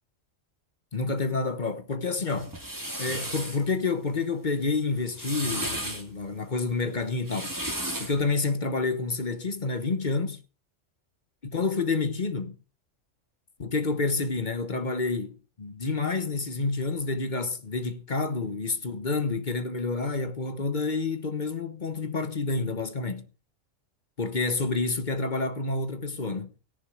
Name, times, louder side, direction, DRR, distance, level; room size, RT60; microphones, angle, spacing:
voice 1, 0.9-2.5 3.0-7.5 8.0-10.4 11.4-12.5 13.6-23.2 24.2-26.5, left 3 dB, 40° left, 1.2 m, -29 dB
sound 1, 2.3-3.6 5.0-6.0 7.1-8.2, right 1 dB, 15° right, 2.0 m, -34 dB
16.0 x 7.2 x 4.8 m
omnidirectional pair, 1.4 m